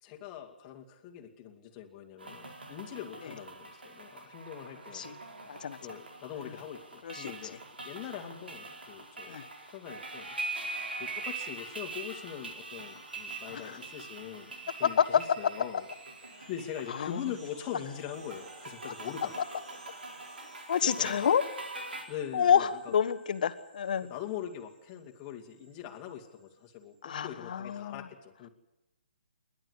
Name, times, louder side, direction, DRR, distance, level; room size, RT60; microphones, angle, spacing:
voice 1, 0.0-5.1 5.8-7.6 7.8-15.8 16.5-19.4 20.8-21.2 22.1-22.9 24.1-28.5, left 10 dB, 25° left, 1 dB, 2.4 m, -42 dB
sound 1, 2.2-22.0, right 3 dB, 80° right, 4.5 m, -43 dB
voice 2, 5.5-5.8 7.0-7.3 9.3-9.5 13.5-13.7 14.8-15.0 17.0-17.2 20.7-21.4 22.3-24.1 27.0-28.0, left 8 dB, 55° left, 12 dB, 1.4 m, -28 dB
sound 2, 11.9-27.0, right 2 dB, 35° right, 5.7 m, -58 dB
28.5 x 11.5 x 8.1 m, 1.0 s
hypercardioid pair, 145°, 5 cm